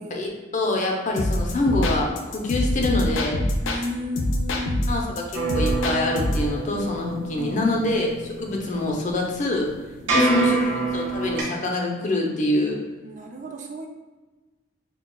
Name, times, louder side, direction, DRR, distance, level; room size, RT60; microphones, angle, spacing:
voice 1, 0.1-3.4 4.9-5.2 5.5-8.1 8.4-9.7 10.1-10.6 10.9-12.8, left 2 dB, 40° left, 0 dB, 0.6 m, -25 dB
sound 1, 1.2-3.9 4.2-6.5, left 1 dB, 90° left, 0.5 m, -25 dB
voice 2, 3.6-5.1 7.4-7.7 10.1-10.9 13.0-13.9, equal, 40° right, 2 dB, 0.3 m, -34 dB
sound 2, 5.3-11.4, right 3 dB, 85° right, 1.1 m, -27 dB
5.7 x 2.3 x 2.3 m, 1.2 s
head